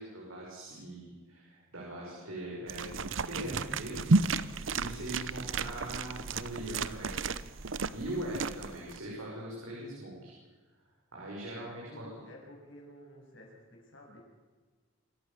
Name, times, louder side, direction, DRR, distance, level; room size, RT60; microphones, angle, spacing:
voice 1, 0.0-7.2 7.9-10.3 11.1-12.1, right 1 dB, 80° right, -4 dB, 6.3 m, -41 dB
sound 1, 2.7-9.0, right 3 dB, 65° right, 0.8 m, -32 dB
voice 2, 11.7-14.2, left 1 dB, 60° left, -1 dB, 7.6 m, -52 dB
27.5 x 14.5 x 7.1 m, 1.3 s
head